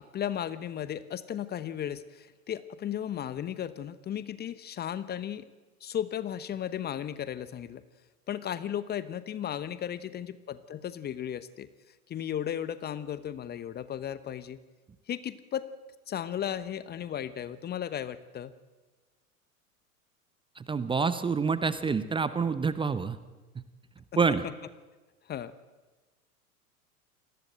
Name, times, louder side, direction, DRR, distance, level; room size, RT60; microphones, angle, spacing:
voice 1, 0.0-5.5 5.8-7.8 8.3-11.7 12.1-14.6 15.1-15.7 16.1-18.5 24.4-24.5 25.3-25.5, left 10 dB, 20° left, 15 dB, 1.0 m, -35 dB
voice 2, 20.6-23.2 23.5-23.6 24.2-24.4, right 5 dB, 10° right, 13 dB, 0.9 m, -27 dB
28.5 x 20.5 x 7.9 m, 1.2 s
figure-of-eight pair, 90°, 45 cm